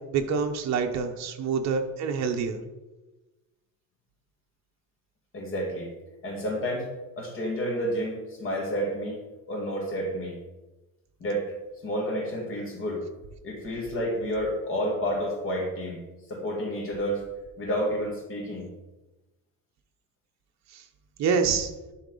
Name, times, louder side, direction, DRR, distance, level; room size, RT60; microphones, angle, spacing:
voice 1, 0.1-2.6 20.7-20.8 21.2-21.7, right 5 dB, 50° right, 4 dB, 1.0 m, -26 dB
voice 2, 5.3-5.9 6.2-6.9 7.2-9.2 9.5-10.4 11.2-11.5 11.8-13.0 13.4-16.0 16.3-17.2 17.6-18.7, equal, 35° left, 0 dB, 2.0 m, -30 dB
11.0 x 4.2 x 3.9 m, 1.1 s
cardioid pair, 155°, 35 cm